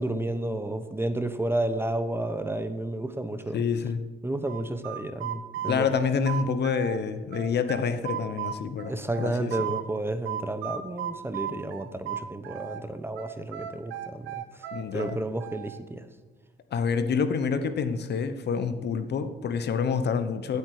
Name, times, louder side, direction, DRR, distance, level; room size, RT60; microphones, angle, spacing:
voice 1, 0.0-3.6 4.2-6.0 8.9-14.6 14.9-16.1, right 1 dB, 10° right, 10 dB, 0.9 m, -31 dB
voice 2, 3.5-4.0 5.7-8.9 9.2-9.5 14.7-15.2 16.7-20.6, left 6 dB, 60° left, 10 dB, 1.0 m, -27 dB
sound 1, 4.5-7.0 7.3-9.9 10.3-12.8 13.2-15.8, right 11 dB, 90° right, 0.9 m, -35 dB
16.0 x 8.1 x 4.9 m, 1.2 s
cardioid pair, 90°, 20 cm